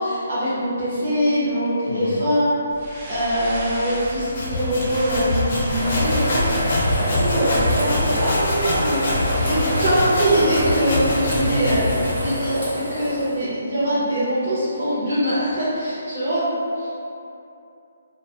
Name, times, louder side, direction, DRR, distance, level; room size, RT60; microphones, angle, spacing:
voice 1, 0.0-2.6 3.1-6.6 7.0-11.8 12.2-12.6 12.9-16.4 16.8-16.9, equal, 45° right, -13 dB, 0.7 m, -23 dB
voice 2, 1.9-2.3 11.3-12.1, left 2 dB, 70° left, 0 dB, 0.3 m, -29 dB
sound 1, 2.7-10.1, left 1 dB, 20° right, 0.4 m, -33 dB
sound 2, 4.0-12.6, left 1 dB, 45° left, 0.7 m, -24 dB
sound 3, 5.7-13.4, equal, 75° right, 0.9 m, -27 dB
2.3 x 2.2 x 2.8 m, 2.6 s
hypercardioid pair, 165°, 0 cm